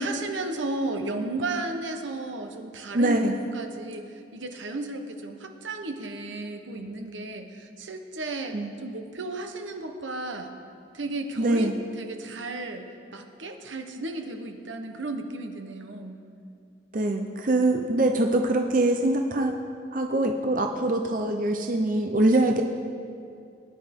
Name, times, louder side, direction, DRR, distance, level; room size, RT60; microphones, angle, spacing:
voice 1, 0.0-8.5 8.8-10.5 10.9-12.9 13.1-16.2, right 2 dB, 80° right, 5 dB, 1.1 m, -34 dB
voice 2, 2.9-3.3 8.5-8.8 11.4-11.7 16.9-19.6 19.9-22.6, right 1 dB, 45° right, 4 dB, 0.7 m, -23 dB
21.5 x 10.0 x 3.7 m, 2.4 s
head